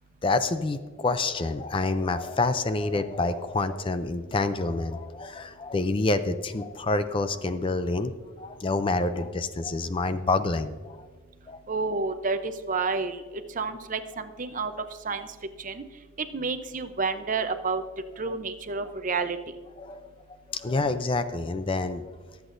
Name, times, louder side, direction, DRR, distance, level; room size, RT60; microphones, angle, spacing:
voice 1, 0.2-8.1 8.4-11.1 11.5-11.6 19.8-20.0 20.5-22.0, left 3 dB, 25° left, 11 dB, 0.4 m, -27 dB
voice 2, 11.7-13.2 13.5-14.7 15.0-15.3 15.6-15.8 16.2-17.8 18.2-19.4, right 4 dB, 40° right, 9 dB, 0.6 m, -29 dB
23.5 x 8.1 x 2.6 m, 1.5 s
head